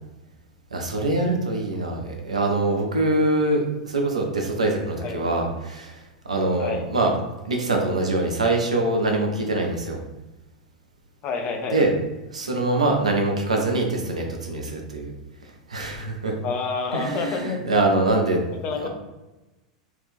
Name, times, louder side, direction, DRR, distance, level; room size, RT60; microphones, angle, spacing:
voice 1, 0.7-7.1 7.4-10.0 11.7-11.9 12.3-15.1 15.7-16.4 16.9-18.4 18.7-18.9, right 2 dB, 75° right, 2 dB, 0.6 m, -24 dB
voice 2, 11.2-11.8 16.4-17.6 18.6-18.9, left 5 dB, 35° left, 4 dB, 0.5 m, -28 dB
2.6 x 2.4 x 3.5 m, 1.1 s
figure-of-eight pair, 90°, 4 cm